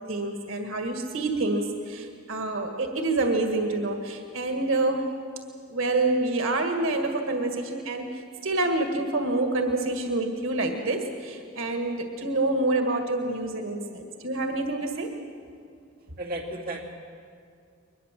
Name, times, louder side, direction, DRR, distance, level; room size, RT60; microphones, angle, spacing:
voice 1, 0.0-5.1 5.7-15.1, right 2 dB, 85° right, 4 dB, 2.0 m, -27 dB
voice 2, 16.2-16.8, right 1 dB, 45° right, -1 dB, 2.7 m, -33 dB
22.5 x 20.5 x 7.6 m, 2.3 s
head